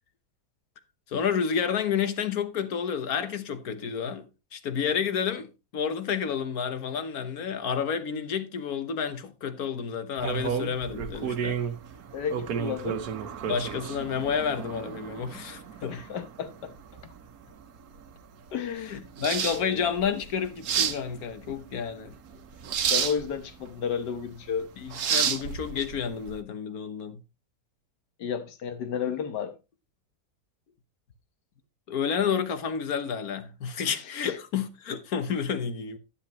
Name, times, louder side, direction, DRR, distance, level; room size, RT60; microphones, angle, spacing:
voice 1, 1.1-11.6 13.5-16.0 18.8-22.2 24.8-27.2 31.9-36.0, left 7 dB, 65° left, 1.6 m, -30 dB
sound 1, 10.2-26.4, right 7 dB, 65° right, 1.4 m, -32 dB
voice 2, 12.1-13.0 15.8-16.7 18.5-19.1 19.4-19.8 22.9-24.7 28.2-29.6 34.2-34.4, left 7 dB, 85° left, 1.8 m, -32 dB
11.5 x 10.0 x 3.0 m
omnidirectional pair, 1.8 m